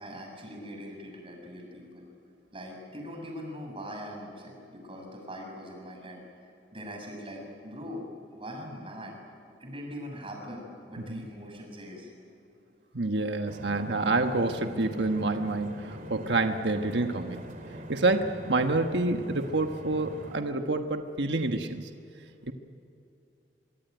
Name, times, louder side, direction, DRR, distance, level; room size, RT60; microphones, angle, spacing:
voice 1, 0.0-2.1 2.5-9.1 9.6-10.6 10.9-12.1, equal, 30° right, 2 dB, 6.8 m, -42 dB
voice 2, 12.9-17.4 17.9-21.9 22.4-22.5, right 2 dB, 80° right, 6 dB, 1.3 m, -28 dB
sound 1, 13.5-20.4, right 1 dB, 50° right, 3.0 m, -43 dB
24.0 x 23.5 x 9.3 m, 2.7 s
head